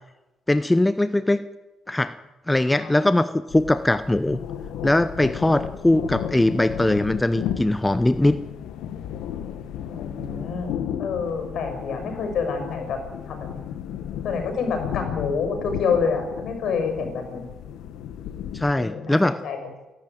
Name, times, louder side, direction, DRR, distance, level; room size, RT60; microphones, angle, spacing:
voice 1, 0.5-1.4 1.9-2.1 2.5-4.4 4.8-8.4 18.5-19.4, left 1 dB, 10° left, 12 dB, 0.8 m, -21 dB
sound 1, 3.5-18.7, left 9 dB, 90° left, 1.4 m, -34 dB
voice 2, 9.9-10.7 11.0-13.0 13.3-13.6 14.2-17.4 18.8-19.6, left 5 dB, 70° left, 6 dB, 6.5 m, -27 dB
29.5 x 12.0 x 9.2 m, 1.0 s
cardioid pair, 90°, 0 cm